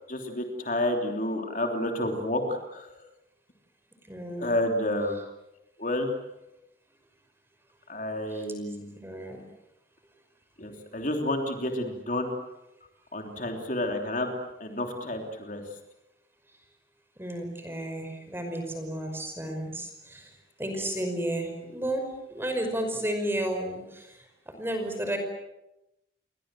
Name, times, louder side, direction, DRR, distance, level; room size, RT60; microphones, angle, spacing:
voice 1, 0.1-3.0 4.4-5.2 5.8-6.1 7.9-8.9 10.6-12.3 13.1-14.3 14.6-15.6 20.8-20.9, left 1 dB, 45° left, 3 dB, 3.3 m, -30 dB
voice 2, 4.1-4.5 8.3-8.4 9.0-9.4 17.2-20.3 20.6-24.2 24.6-25.2, right 1 dB, 10° right, 5 dB, 5.4 m, -32 dB
30.0 x 23.0 x 7.7 m, 0.91 s
head